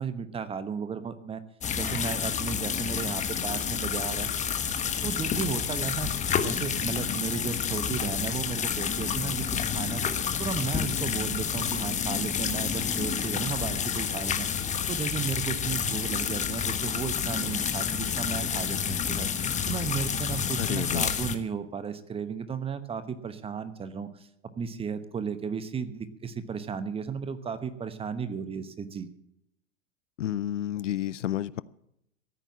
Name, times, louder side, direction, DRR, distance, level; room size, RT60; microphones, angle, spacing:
voice 1, 0.0-1.4 1.8-4.3 5.0-6.1 6.4-10.0 10.4-14.5 14.9-19.3 19.7-24.3 24.6-29.1, right 6 dB, 15° right, 12 dB, 1.0 m, -34 dB
sound 1, 1.6-21.3, left 7 dB, 20° left, 1.3 m, -29 dB
voice 2, 20.6-21.1 30.2-31.6, left 12 dB, 70° left, 20 dB, 0.6 m, -30 dB
14.0 x 9.1 x 7.5 m, 0.79 s
figure-of-eight pair, 100°, 38 cm